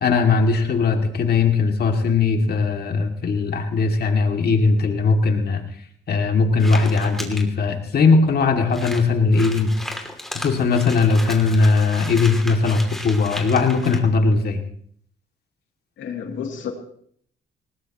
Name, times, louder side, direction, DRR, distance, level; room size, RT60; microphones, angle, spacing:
voice 1, 0.0-5.6 6.1-9.7 10.3-14.6, left 4 dB, 55° left, 4 dB, 2.4 m, -19 dB
sound 1, 6.6-7.4 8.1-8.2 8.4-8.5 8.7-14.0, left 1 dB, ahead, 2.7 m, -35 dB
voice 2, 16.0-16.7, left 7 dB, 75° left, 2 dB, 2.8 m, -30 dB
19.5 x 18.0 x 3.0 m, 0.62 s
cardioid pair, 90°, 20 cm